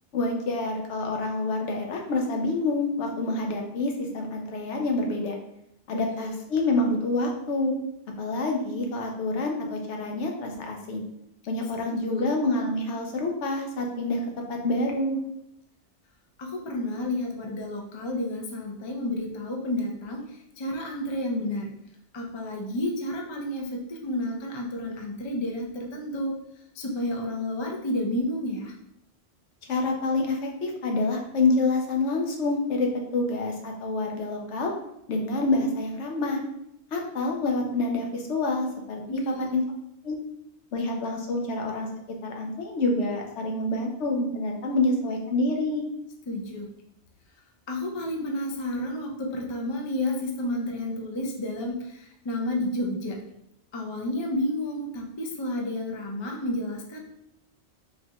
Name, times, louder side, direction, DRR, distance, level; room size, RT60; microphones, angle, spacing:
voice 1, 0.1-5.3 5.9-7.7 8.2-11.0 11.5-14.2 14.5-15.2 29.7-34.7 35.1-36.4 36.9-39.6 40.0-40.2 40.7-41.9 42.2-45.8, left 2 dB, 85° left, 1 dB, 1.0 m, -27 dB
voice 2, 5.9-6.3 11.8-12.2 16.4-21.7 22.1-26.3 26.7-28.7 39.1-39.6 46.3-46.7 47.7-53.2 53.7-57.0, left 1 dB, 50° left, 0 dB, 0.3 m, -31 dB
4.0 x 2.3 x 2.8 m, 0.79 s
omnidirectional pair, 1.2 m